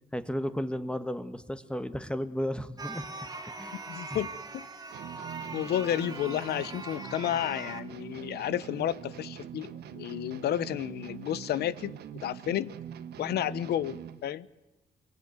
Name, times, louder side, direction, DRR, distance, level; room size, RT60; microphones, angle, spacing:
voice 1, 0.1-3.1 3.4-3.8 4.1-4.2, equal, 5° left, 1.5 m, -34 dB
sound 1, 2.8-7.8, right 3 dB, 25° right, 2.1 m, -41 dB
voice 2, 3.9-4.6 5.5-12.8 13.2-14.5, left 11 dB, 90° left, 0.9 m, -32 dB
sound 2, 4.9-14.3, right 10 dB, 90° right, 1.4 m, -43 dB
24.0 x 23.0 x 9.6 m
cardioid pair, 105°, 16 cm